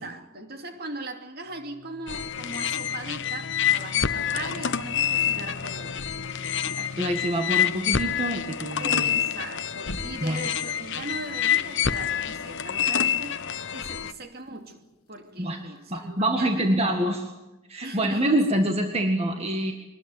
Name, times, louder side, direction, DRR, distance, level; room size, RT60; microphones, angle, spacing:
voice 1, 0.0-6.1 8.8-13.4 13.7-14.8 15.1-16.7 17.8-18.4 19.5-19.6, right 2 dB, 45° right, 5 dB, 2.7 m, -39 dB
sound 1, 1.5-7.3 9.8-10.6, left 2 dB, 80° left, 1.7 m, -42 dB
sound 2, 2.1-14.1, left 9 dB, 55° left, 0.9 m, -27 dB
voice 2, 6.8-9.1 10.2-10.5 15.4-15.6 15.9-17.3 17.7-19.7, right 1 dB, 30° right, 3 dB, 1.8 m, -26 dB
24.5 x 20.5 x 9.3 m, 1.0 s
head